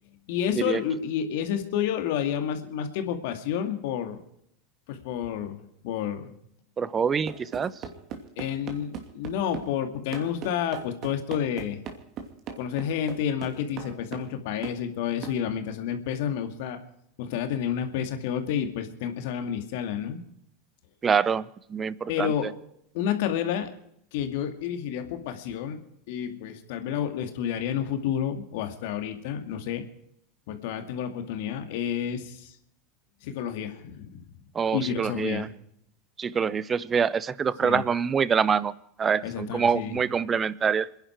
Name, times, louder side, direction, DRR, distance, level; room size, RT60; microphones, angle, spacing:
voice 1, 0.3-4.2 4.9-6.3 8.4-11.8 12.6-16.8 17.2-20.2 22.1-22.5 22.9-23.7 24.1-29.8 30.5-32.5 33.2-34.2 34.7-35.5 37.6-37.8 39.2-40.0, left 9 dB, 65° left, 7 dB, 2.3 m, -30 dB
voice 2, 6.8-7.7 21.0-21.4 21.7-22.3 34.5-35.5 36.2-38.7 39.0-40.9, right 6 dB, 25° right, 19 dB, 0.8 m, -25 dB
sound 1, 7.3-9.7 10.1-14.3 14.6-14.8 15.2-15.4, right 7 dB, 45° right, 2.8 m, -39 dB
27.5 x 10.5 x 4.6 m, 0.74 s
hypercardioid pair, 90°, 0 cm